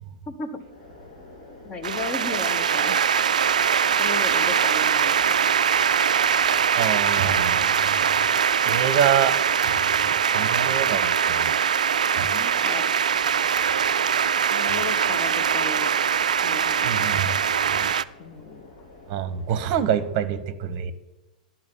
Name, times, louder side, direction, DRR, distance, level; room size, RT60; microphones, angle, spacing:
voice 1, 0.3-0.6 1.6-3.0 4.0-5.3 12.3-12.8 14.5-15.9 16.4-17.2 18.2-18.7, left 4 dB, 25° left, 7 dB, 1.3 m, -35 dB
sound 1, 0.6-20.1, left 2 dB, 50° left, 3.7 m, -49 dB
sound 2, 1.8-18.0, right 7 dB, 65° right, 0.3 m, -22 dB
voice 2, 6.7-7.7 8.6-9.4 9.6-9.8 10.3-11.6 12.2-12.3 16.8-17.3 17.7-17.9 19.1-20.9, right 9 dB, 40° right, 14 dB, 0.9 m, -26 dB
11.0 x 5.8 x 8.2 m, 1.1 s
figure-of-eight pair, 100°, 4 cm